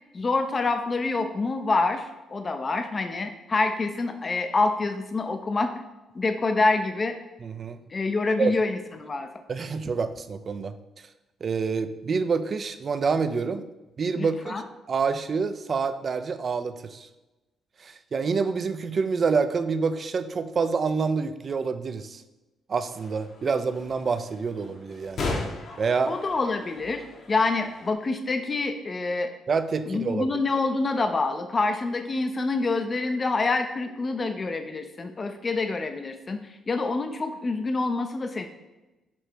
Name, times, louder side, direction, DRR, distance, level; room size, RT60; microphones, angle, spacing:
voice 1, 0.1-5.7 6.1-7.1 7.9-9.3 14.2-14.6 26.1-29.3 29.9-38.5, left 3 dB, 35° left, 7 dB, 0.6 m, -26 dB
voice 2, 7.4-7.8 8.4-8.5 9.5-10.7 11.4-13.6 14.0-14.6 14.9-17.1 17.8-22.2 22.7-25.3 25.8-26.1 29.5-30.4, right 5 dB, 45° right, 10 dB, 0.5 m, -27 dB
sound 1, 22.9-27.9, left 3 dB, 60° left, 1.2 m, -37 dB
7.0 x 3.2 x 4.5 m, 1.0 s
cardioid pair, 90°, 0 cm